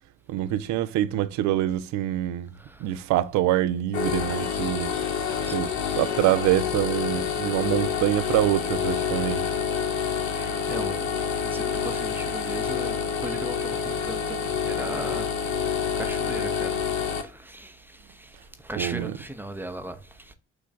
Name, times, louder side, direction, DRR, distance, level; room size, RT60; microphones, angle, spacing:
voice 1, 0.3-2.5 2.8-4.9 5.5-9.5 18.8-19.2, right 13 dB, 70° right, 0.5 m, -25 dB
voice 2, 2.5-2.9 5.4-5.6 10.3-11.1 11.4-15.3 16.0-16.8 17.2-20.3, right 1 dB, 5° right, 0.8 m, -38 dB
sound 1, 3.9-17.2, left 7 dB, 70° left, 0.7 m, -28 dB
6.1 x 2.5 x 3.5 m
hypercardioid pair, 45°, 30 cm